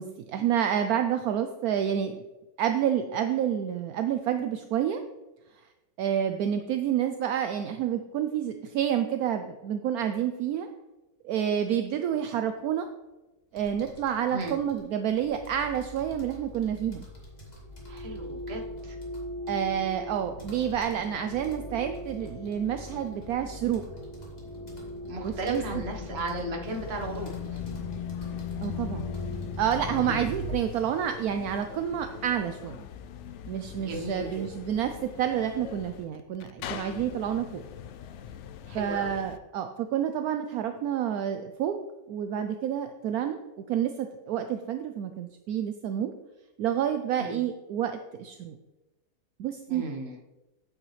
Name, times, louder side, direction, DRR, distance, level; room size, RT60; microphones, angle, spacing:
voice 1, 0.0-2.2 2.6-5.0 6.0-10.7 11.2-12.9 13.5-17.1 19.5-23.8 25.2-25.6 28.6-29.1 29.6-32.8 33.5-37.6 38.7-41.8 42.1-43.4 43.7-46.1 46.6-48.6 49.4-49.8, right 9 dB, 75° right, 8 dB, 1.0 m, -29 dB
sound 1, 13.5-30.1, left 1 dB, 25° left, 2.2 m, -52 dB
voice 2, 14.3-14.6 17.9-19.0 25.1-27.6 30.0-30.3 33.8-34.5 38.7-39.1 47.2-47.4 49.7-50.2, right 2 dB, 45° right, 1 dB, 1.4 m, -35 dB
sound 2, 15.3-30.5, left 3 dB, 50° left, 2.9 m, -39 dB
sound 3, 26.7-39.4, left 8 dB, 70° left, 0.7 m, -44 dB
8.9 x 8.6 x 3.2 m, 1.1 s
omnidirectional pair, 1.7 m